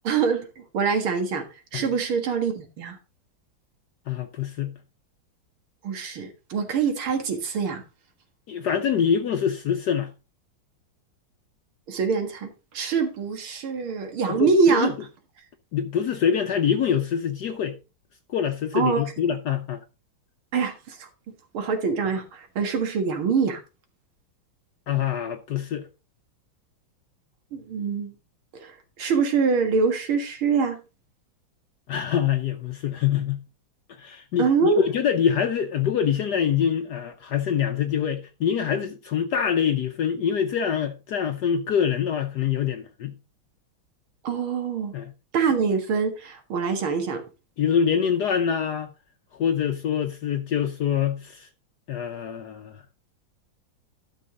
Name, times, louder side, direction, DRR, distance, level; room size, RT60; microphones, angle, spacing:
voice 1, 0.0-1.4 1.7-3.0 5.8-7.8 11.9-14.9 18.7-19.0 20.5-21.1 21.5-23.6 27.5-28.2 28.6-28.7 29.0-30.8 34.4-34.8 44.2-44.9 45.3-47.2, right 5 dB, 85° right, 2.5 m, -24 dB
voice 2, 4.1-4.7 8.5-10.1 14.3-14.9 15.7-17.8 18.3-19.8 24.9-25.9 31.9-33.4 34.0-43.1 44.9-45.1 47.6-48.9 49.3-51.5 51.9-52.8, left 8 dB, 65° left, 1.2 m, -25 dB
12.0 x 6.2 x 3.8 m
omnidirectional pair, 2.2 m